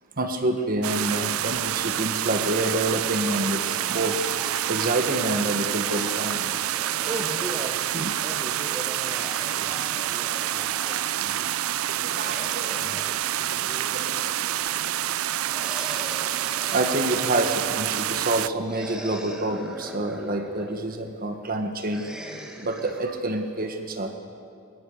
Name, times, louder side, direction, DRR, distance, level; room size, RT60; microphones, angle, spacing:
voice 1, 0.2-4.2 4.5-6.5 7.9-8.1 12.0-12.8 13.9-14.3 15.6-15.8 16.7-22.1 22.6-24.2, right 1 dB, 45° right, 6 dB, 1.4 m, -27 dB
sound 1, 0.8-18.5, right 12 dB, 90° right, 0.5 m, -27 dB
sound 2, 3.6-7.9 8.9-11.1 11.9-14.3 15.4-17.7 18.6-20.8 21.9-23.0, equal, 5° right, 1.7 m, -42 dB
voice 2, 6.8-7.9 8.2-9.8 10.1-11.5 12.0-13.4, right 1 dB, 20° right, 2 dB, 1.0 m, -39 dB
21.5 x 19.5 x 7.0 m, 2.4 s
head